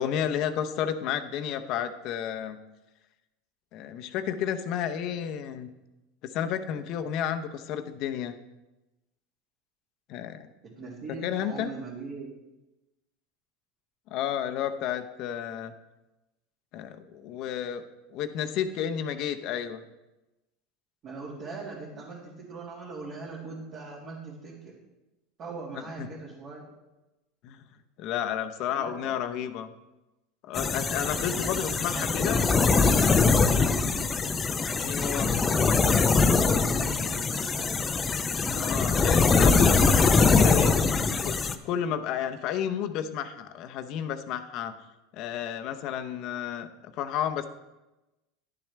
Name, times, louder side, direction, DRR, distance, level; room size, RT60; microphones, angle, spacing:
voice 1, 0.0-2.6 3.7-5.7 6.3-8.3 10.1-10.5 11.1-11.7 14.1-15.7 16.7-17.8 18.1-19.8 26.0-26.1 27.4-27.6 28.0-29.7 30.4-32.4 34.8-35.3 38.5-40.8 41.2-44.7 45.1-47.5, left 9 dB, 55° left, 8 dB, 0.8 m, -31 dB
voice 2, 10.8-12.3 21.0-24.7 25.4-26.7 28.8-29.2 30.7-33.7 36.3-37.9, right 4 dB, 40° right, -6 dB, 2.2 m, -41 dB
sound 1, 30.5-41.5, left 4 dB, 20° left, 0.5 m, -23 dB
11.0 x 7.3 x 3.4 m, 1.0 s
supercardioid pair, 115°, 0 cm